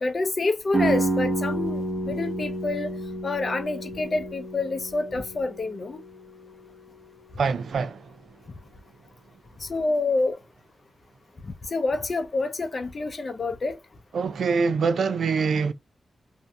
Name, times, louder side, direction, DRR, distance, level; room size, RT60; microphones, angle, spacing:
voice 1, 0.0-2.9 3.2-6.0 9.6-10.4 11.4-13.8, left 3 dB, 50° left, 0.6 m, -27 dB
sound 1, 0.7-6.5, right 2 dB, 25° right, 1.1 m, -29 dB
voice 2, 7.4-8.1 14.1-15.7, right 5 dB, 80° right, 0.4 m, -24 dB
2.6 x 2.6 x 2.3 m
cardioid pair, 65°, 0 cm